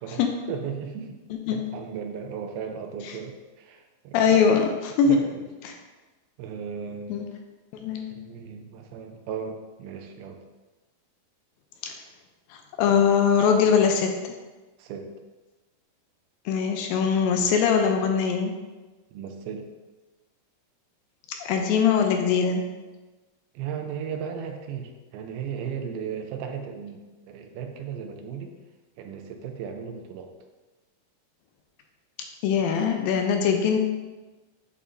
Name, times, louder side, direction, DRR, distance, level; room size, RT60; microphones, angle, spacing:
voice 1, 0.0-1.2 1.5-4.6 5.0-5.4 6.4-7.3 8.1-10.4 12.8-12.9 14.8-15.1 19.1-19.7 23.5-27.0 27.3-28.6 29.0-30.3, right 7 dB, 90° right, 4 dB, 2.5 m, -36 dB
voice 2, 4.1-5.2 5.6-5.7 7.1-7.3 7.7-8.1 11.8-11.9 12.8-14.1 16.5-18.6 21.4-22.7 32.4-33.8, left 6 dB, 80° left, 4 dB, 2.2 m, -21 dB
8.5 x 5.0 x 2.6 m, 1.2 s
omnidirectional pair, 4.3 m